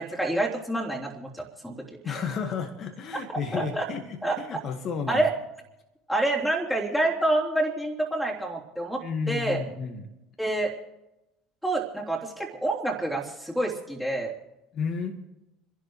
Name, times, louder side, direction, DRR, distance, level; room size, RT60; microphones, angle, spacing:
voice 1, 0.0-2.2 3.5-3.8 4.2-4.4 5.1-5.3 6.1-9.6 10.4-10.7 11.6-14.3, right 1 dB, ahead, -1 dB, 3.7 m, -28 dB
voice 2, 2.0-5.3 8.9-10.1 14.7-15.2, left 6 dB, 45° left, 4 dB, 1.8 m, -32 dB
29.5 x 11.5 x 3.3 m, 0.95 s
hypercardioid pair, 65°, 0 cm